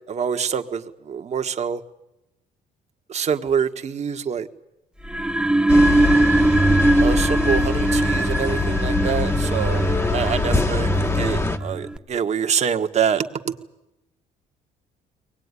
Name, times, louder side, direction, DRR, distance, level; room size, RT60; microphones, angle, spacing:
voice 1, 0.1-1.8 3.1-4.5 7.0-9.8 10.1-13.6, right 7 dB, 40° right, 7 dB, 1.6 m, -25 dB
sound 1, 5.0-12.0, right 2 dB, 5° right, 0.8 m, -21 dB
sound 2, 5.7-11.6, left 4 dB, 15° left, 1.3 m, -24 dB
23.5 x 19.0 x 9.8 m, 0.93 s
cardioid pair, 110°, 17 cm